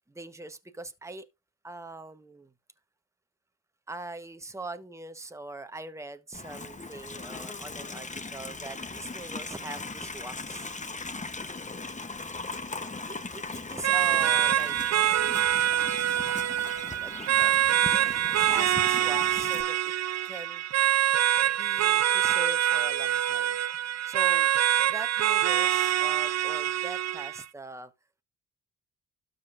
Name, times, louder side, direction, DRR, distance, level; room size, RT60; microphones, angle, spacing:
voice 1, 0.1-1.3 1.6-2.5 3.9-10.7 13.1-15.6 17.0-19.8 20.2-20.6 21.6-23.6 24.0-24.5 24.9-27.9, right 2 dB, 5° right, 1.1 m, -42 dB
Livestock farm animals working animals, 6.3-19.6, left 3 dB, 20° left, 0.9 m, -39 dB
sound 1, 13.8-27.4, right 11 dB, 45° right, 0.4 m, -25 dB
12.5 x 5.2 x 2.5 m
cardioid pair, 60°, 39 cm